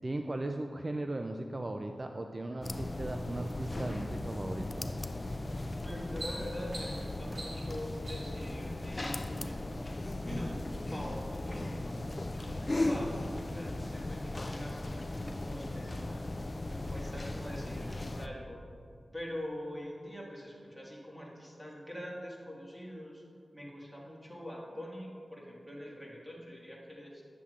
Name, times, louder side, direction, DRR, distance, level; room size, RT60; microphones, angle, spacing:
voice 1, 0.0-4.9, right 2 dB, 40° right, 5 dB, 0.3 m, -37 dB
sound 1, 2.6-18.3, left 2 dB, 40° left, 0.3 m, -37 dB
sound 2, 5.3-5.5 5.9-8.5 9.3-9.8 10.2-10.4, right 2 dB, 65° right, 1.5 m, -45 dB
voice 2, 5.8-16.2 16.7-18.6 19.1-23.2 23.5-27.2, equal, 5° left, -4 dB, 1.7 m, -44 dB
9.6 x 7.1 x 2.4 m, 2.4 s
wide cardioid pair, 65°, 0 cm